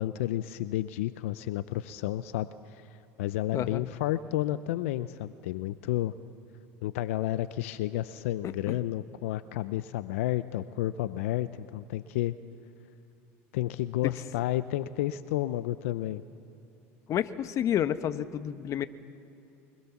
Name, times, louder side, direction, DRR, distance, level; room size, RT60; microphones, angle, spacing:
voice 1, 0.0-2.9 3.2-6.1 6.8-12.3 13.5-16.2, left 14 dB, 80° left, 14 dB, 0.6 m, -31 dB
voice 2, 17.1-18.9, left 10 dB, 50° left, 12 dB, 1.0 m, -29 dB
24.5 x 20.5 x 7.2 m, 2.8 s
hypercardioid pair, 90°, 7 cm